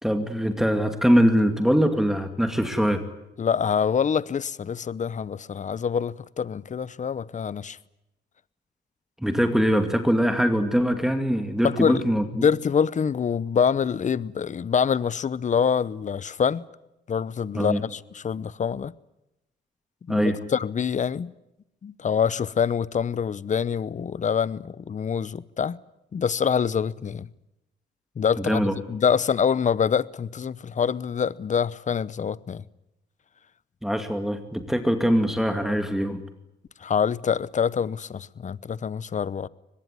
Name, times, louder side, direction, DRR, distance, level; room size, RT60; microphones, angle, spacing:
voice 1, 0.0-3.1 9.2-12.5 17.5-17.8 20.1-20.4 28.4-28.7 33.8-36.2, equal, ahead, 2.3 m, -22 dB
voice 2, 3.4-7.8 11.6-12.0 12.3-16.6 17.1-18.9 20.1-21.3 21.8-25.8 26.1-27.3 28.2-28.6 28.9-32.6 36.8-39.5, left 7 dB, 40° left, 0.9 m, -25 dB
23.5 x 20.5 x 9.6 m
cardioid pair, 90°, 20 cm